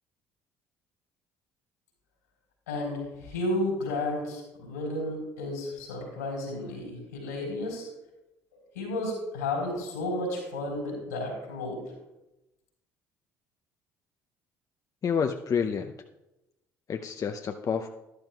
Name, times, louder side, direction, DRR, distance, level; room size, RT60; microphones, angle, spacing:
voice 1, 2.7-7.9 8.5-11.8, left 1 dB, 80° left, -2 dB, 4.1 m, -32 dB
voice 2, 15.0-15.9 16.9-17.9, left 6 dB, 40° left, 6 dB, 0.6 m, -29 dB
12.5 x 12.0 x 2.3 m, 0.96 s
figure-of-eight pair, 55°, 9 cm